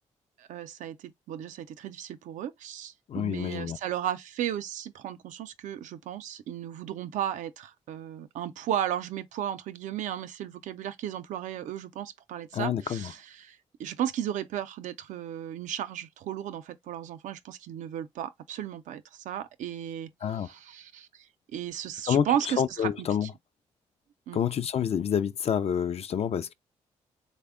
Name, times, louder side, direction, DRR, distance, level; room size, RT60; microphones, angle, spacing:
voice 1, 0.4-21.3 21.5-23.3 24.3-24.4, right 10 dB, 80° right, 0.5 m, -35 dB
voice 2, 3.1-3.8 12.5-13.1 20.2-20.5 22.1-22.3 22.6-23.3 24.3-26.5, left 8 dB, 55° left, 0.4 m, -28 dB
3.4 x 2.1 x 3.5 m
cardioid pair, 65°, 13 cm